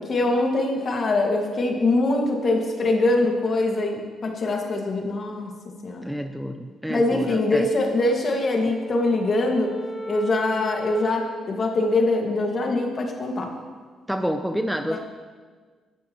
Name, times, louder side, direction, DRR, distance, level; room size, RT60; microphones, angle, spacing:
voice 1, 0.0-5.5 5.8-6.1 6.9-9.7 10.1-13.5 14.9-15.0, left 2 dB, 45° left, 1 dB, 2.0 m, -23 dB
voice 2, 6.0-7.7 8.6-8.7 14.1-15.0, equal, ahead, 6 dB, 0.6 m, -28 dB
Wind instrument woodwind instrument, 8.4-12.9, right 2 dB, 15° left, 3.1 m, -38 dB
16.0 x 12.5 x 3.1 m, 1.5 s
cardioid pair, 100°, 0 cm